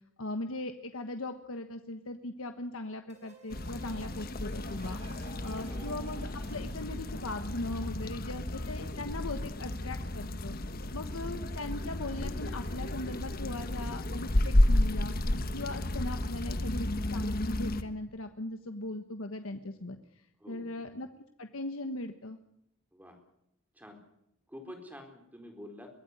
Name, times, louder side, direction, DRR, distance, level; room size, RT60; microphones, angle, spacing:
voice 1, 0.2-20.0 20.5-21.1 21.4-22.4, left 2 dB, 90° left, 7 dB, 1.3 m, -39 dB
sound 1, 3.1-8.8, right 1 dB, 35° right, 7.2 m, -53 dB
sound 2, 3.5-17.8, left 1 dB, 45° left, 1.3 m, -32 dB
voice 2, 20.4-20.8 22.9-23.2 23.7-24.0 24.5-25.9, left 1 dB, 10° right, 4 dB, 4.4 m, -48 dB
23.5 x 16.5 x 9.8 m, 0.78 s
head